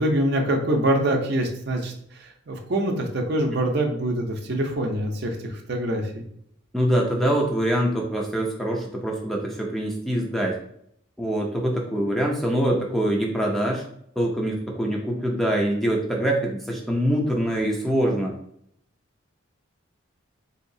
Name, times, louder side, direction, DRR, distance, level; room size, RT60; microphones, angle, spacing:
voice 1, 0.0-6.2, right 1 dB, 50° right, 3 dB, 0.6 m, -25 dB
voice 2, 6.7-10.6 11.2-13.8 14.2-18.3, right 1 dB, ahead, -1 dB, 0.4 m, -24 dB
3.9 x 2.8 x 2.6 m, 0.70 s
head